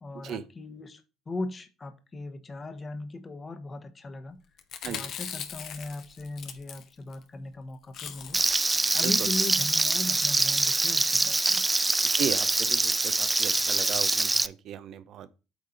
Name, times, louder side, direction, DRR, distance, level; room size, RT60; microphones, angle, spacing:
voice 1, 0.0-4.4 4.8-8.4 8.9-11.6, left 2 dB, 30° left, 1.1 m, -38 dB
Chewing mastication, 4.6-7.2 7.5-7.6 7.8-8.5 8.8-9.5 10.0-10.3 10.9-11.2 11.9-12.1 12.4-12.5 12.7-12.8, left 8 dB, 55° left, 0.9 m, -41 dB
Frying (food), 8.3-14.5, right 2 dB, 20° right, 0.4 m, -24 dB
voice 2, 12.0-15.3, right 9 dB, 60° right, 0.7 m, -36 dB
8.4 x 3.7 x 4.3 m
hypercardioid pair, 60°, 0 cm